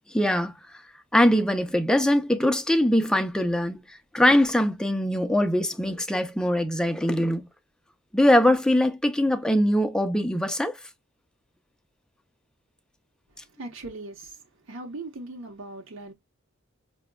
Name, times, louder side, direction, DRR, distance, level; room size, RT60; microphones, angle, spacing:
voice 1, 0.1-0.5 1.1-3.8 4.1-7.5 8.1-10.8, left 1 dB, 5° left, 0.5 m, -22 dB
voice 2, 13.6-16.1, right 2 dB, 70° right, 0.8 m, -39 dB
6.0 x 2.2 x 2.2 m
head